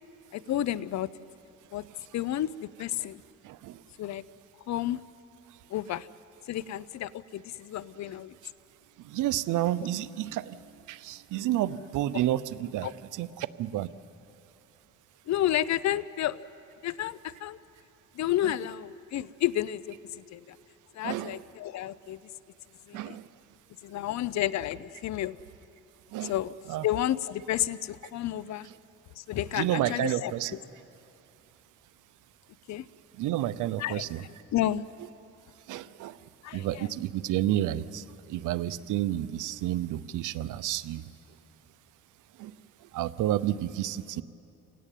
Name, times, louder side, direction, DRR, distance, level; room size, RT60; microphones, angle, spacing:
voice 1, 0.3-1.1 1.7-1.8 2.1-2.5 2.8-3.2 4.0-4.2 4.7-5.0 5.7-6.1 6.5-8.3 12.8-12.9 15.3-16.4 16.8-17.6 18.2-20.0 20.3-20.6 21.0-22.2 22.9-23.2 23.8-25.4 26.2-26.5 26.8-28.7 29.2-30.3 32.7-32.8 33.8-34.0 34.5-34.8 36.4-36.8, left 12 dB, 65° left, 18 dB, 0.7 m, -31 dB
voice 2, 3.4-3.8 8.1-8.5 9.0-13.9 18.4-18.6 21.0-21.4 22.9-23.3 26.1-26.3 26.7-26.9 28.6-28.7 29.5-30.6 33.1-34.2 35.0-35.1 35.7-41.0 42.4-42.5 42.8-44.2, right 13 dB, 85° right, 15 dB, 0.8 m, -31 dB
28.5 x 17.0 x 9.2 m, 2.8 s
cardioid pair, 90°, 30 cm